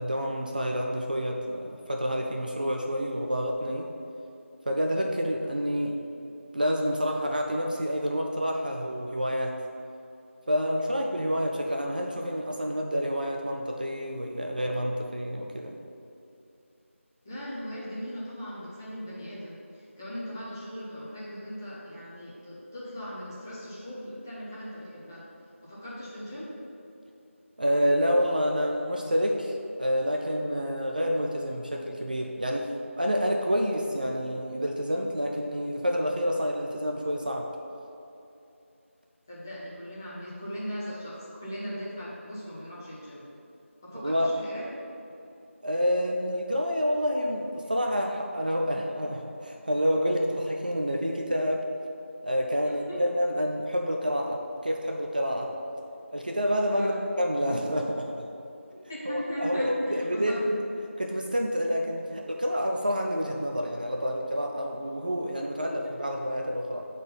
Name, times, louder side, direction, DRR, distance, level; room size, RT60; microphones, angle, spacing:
voice 1, 0.0-3.9 4.7-5.9 6.5-9.5 10.5-15.7 27.6-32.7 33.0-37.5 44.0-44.3 45.6-51.6 52.2-55.5 56.1-58.1 59.0-60.4 61.0-66.9, equal, 40° right, 0 dB, 0.5 m, -28 dB
voice 2, 17.2-25.2 25.6-26.5 39.3-43.3 43.8-44.7 52.6-53.0 56.7-57.0 58.9-60.4, equal, 15° left, -9 dB, 0.9 m, -38 dB
7.4 x 4.1 x 5.4 m, 2.7 s
figure-of-eight pair, 170°, 7 cm